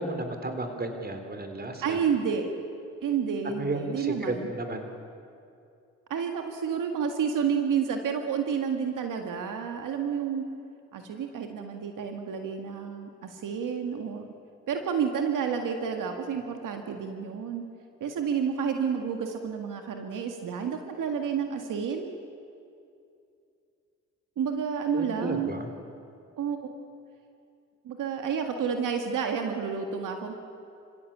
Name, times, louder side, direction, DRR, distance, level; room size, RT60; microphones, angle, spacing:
voice 1, 0.0-2.0 3.4-4.9 24.9-25.7, right 2 dB, 30° right, 6 dB, 3.4 m, -33 dB
voice 2, 1.8-2.5 3.0-4.5 6.1-10.4 10.9-14.3 14.7-17.6 18.0-22.1 24.4-25.5 26.4-26.6 27.8-30.3, right 7 dB, 80° right, 4 dB, 1.9 m, -30 dB
27.0 x 16.0 x 8.6 m, 2.5 s
cardioid pair, 70°, 31 cm